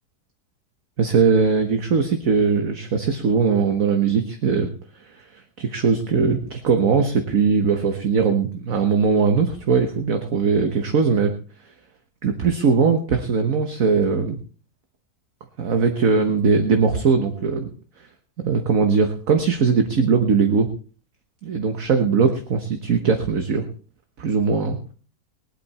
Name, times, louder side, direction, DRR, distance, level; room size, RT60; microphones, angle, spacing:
voice 1, 1.0-4.7 5.0-11.3 12.2-14.4 15.6-17.7 18.4-20.7 21.4-23.6 24.2-24.8, right 5 dB, 60° right, 6 dB, 1.6 m, -20 dB
21.5 x 8.4 x 4.2 m, 0.40 s
omnidirectional pair, 1.7 m